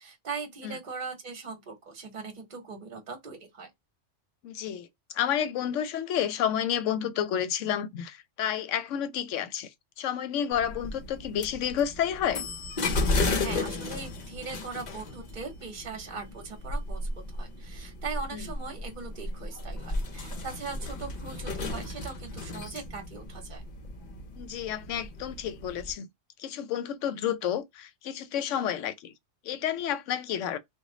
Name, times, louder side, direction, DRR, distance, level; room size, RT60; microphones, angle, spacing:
voice 1, 0.0-3.7 13.4-17.0 17.3-23.6, right 4 dB, 40° right, 1.1 m, -40 dB
voice 2, 4.4-4.9 5.1-9.7 10.0-12.4 18.3-18.4 24.4-26.1 26.4-29.1 29.4-30.6, left 9 dB, 75° left, 0.9 m, -30 dB
sound 1, 10.5-25.9, left 2 dB, 45° left, 0.7 m, -34 dB
3.0 x 2.4 x 3.8 m
omnidirectional pair, 1.3 m